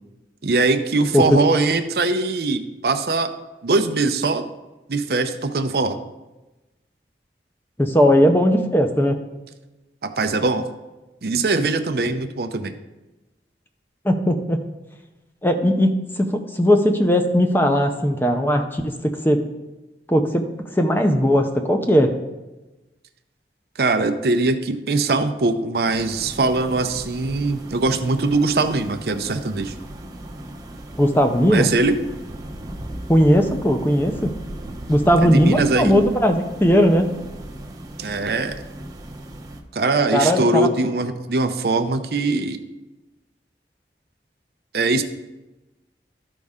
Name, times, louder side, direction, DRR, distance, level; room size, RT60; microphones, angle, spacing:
voice 1, 0.4-3.4 3.6-4.5 4.9-6.0 10.0-10.7 11.2-12.7 23.8-29.7 31.5-32.0 35.2-36.1 38.0-38.6 39.7-42.6 44.7-45.0, right 3 dB, 60° right, 8 dB, 0.6 m, -21 dB
voice 2, 7.8-9.2 14.0-14.6 15.4-19.4 20.1-20.4 20.8-22.1 31.0-31.7 33.1-34.3 34.9-37.1 40.1-40.7, equal, 10° left, 5 dB, 0.6 m, -18 dB
sound 1, 25.8-39.6, right 1 dB, 20° right, 0.7 m, -37 dB
13.0 x 5.3 x 3.6 m, 1.1 s
head